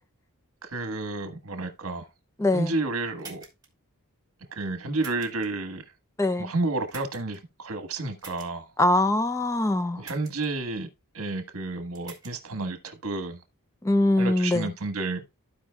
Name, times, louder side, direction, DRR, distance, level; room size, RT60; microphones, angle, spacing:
voice 1, 0.6-2.1 2.5-3.4 4.5-5.8 6.4-8.7 10.0-10.9 11.1-13.4 14.2-15.2, right 3 dB, 70° right, 1.4 m, -31 dB
voice 2, 2.4-2.7 6.2-6.5 8.8-10.0 13.8-14.7, left 2 dB, 15° left, 0.4 m, -23 dB
sound 1, 3.2-3.7 5.0-5.5 6.9-7.4 8.2-8.5 10.0-10.5 11.9-12.3, right 5 dB, 15° right, 2.9 m, -45 dB
15.0 x 5.1 x 2.3 m
head